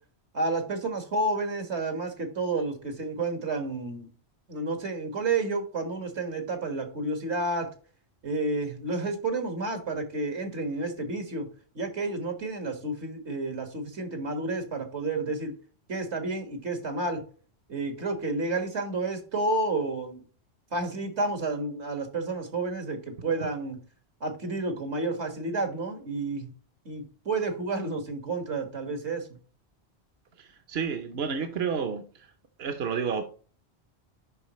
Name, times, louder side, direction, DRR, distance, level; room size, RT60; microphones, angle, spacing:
voice 1, 0.3-4.1 4.5-7.7 8.2-11.5 11.7-15.5 15.9-17.2 17.7-20.2 20.7-23.8 24.2-26.5 26.9-29.3, right 2 dB, 85° right, 5 dB, 2.0 m, -30 dB
voice 2, 30.4-32.3 32.6-33.3, right 6 dB, 70° right, 6 dB, 1.0 m, -31 dB
10.5 x 4.0 x 3.0 m, 0.40 s
omnidirectional pair, 1.1 m